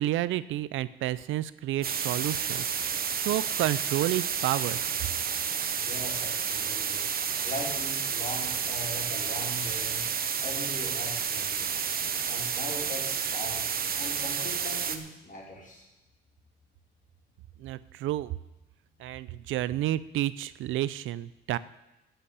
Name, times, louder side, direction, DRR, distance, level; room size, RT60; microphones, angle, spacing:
voice 1, 0.0-4.8 17.6-18.3 19.0-21.6, right 14 dB, 85° right, 17 dB, 0.5 m, -30 dB
sound 1, 1.8-15.0, right 7 dB, 50° right, 1.1 m, -30 dB
voice 2, 5.8-7.0 7.4-10.0 10.4-11.9 12.3-13.6 14.0-15.8, left 1 dB, 45° left, -3 dB, 5.0 m, -40 dB
10.0 x 8.1 x 8.2 m, 0.94 s
cardioid pair, 90°, 20 cm